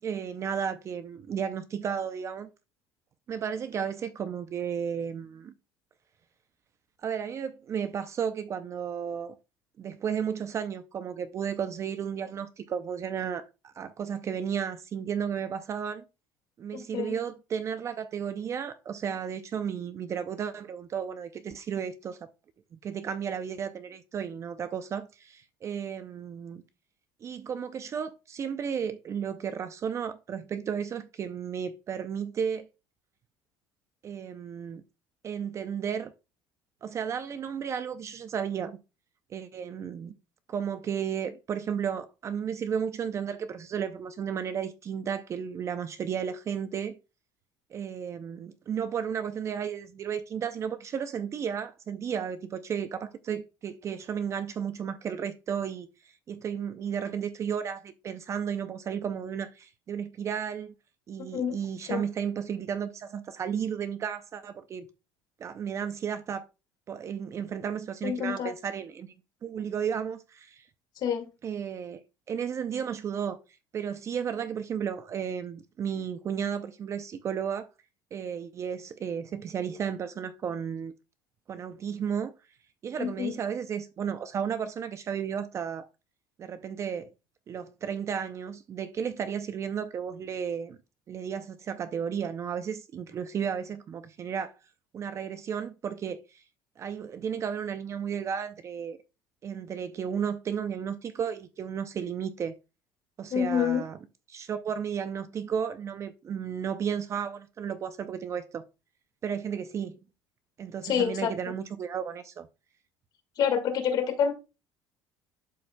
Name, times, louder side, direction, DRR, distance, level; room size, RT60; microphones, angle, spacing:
voice 1, 0.0-2.5 3.3-5.5 7.0-9.3 9.8-16.0 16.6-22.3 22.8-26.6 27.2-32.7 34.0-34.8 35.2-36.1 36.8-38.8 39.3-40.1 40.5-47.0 47.7-60.7 61.1-64.9 65.4-66.5 66.9-69.1 69.4-70.7 71.4-72.0 72.3-73.4 73.7-77.7 78.1-80.9 81.5-82.3 82.8-85.9 86.4-87.1 87.5-90.8 91.1-94.5 94.9-96.4 96.8-99.0 99.4-102.5 103.2-104.0 104.3-108.6 109.2-110.0 110.6-112.5, right 7 dB, 35° right, 0.5 m, -33 dB
voice 2, 16.7-17.1 61.3-61.6 61.9-62.0 68.0-68.5 71.0-71.3 83.0-83.3 103.3-103.8 110.8-111.3 113.4-114.3, left 7 dB, 50° left, 1.8 m, -27 dB
12.0 x 4.3 x 2.2 m
cardioid pair, 135°, 9 cm